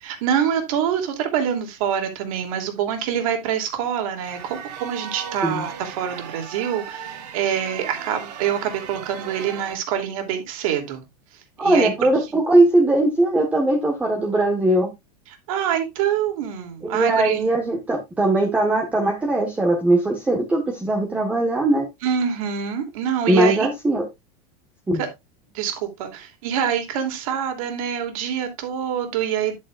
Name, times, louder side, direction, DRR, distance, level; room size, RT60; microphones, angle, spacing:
voice 1, 0.0-11.1 11.6-11.9 15.5-17.4 22.0-23.7 25.0-25.1 25.5-29.5, right 9 dB, 55° right, 2.9 m, -25 dB
sound 1, 4.2-9.7, right 8 dB, 75° right, 3.0 m, -37 dB
voice 2, 11.6-14.9 16.8-21.9 23.3-24.0 24.9-25.0, right 1 dB, 5° right, 1.3 m, -20 dB
10.5 x 8.6 x 2.4 m
supercardioid pair, 170°, 21 cm